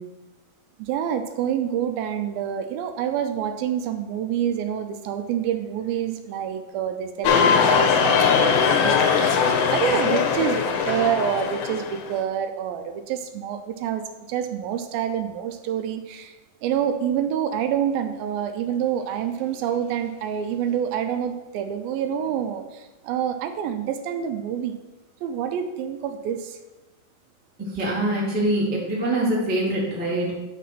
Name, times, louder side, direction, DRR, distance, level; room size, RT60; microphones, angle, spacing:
voice 1, 0.8-14.0 14.3-16.3 16.6-24.8 25.2-26.6, right 9 dB, 80° right, 8 dB, 2.3 m, -27 dB
sound 1, 7.2-12.1, left 6 dB, 85° left, 2.6 m, -20 dB
voice 2, 27.6-30.3, right 1 dB, 15° right, -5 dB, 0.3 m, -24 dB
10.0 x 3.7 x 5.8 m, 1.1 s
omnidirectional pair, 4.4 m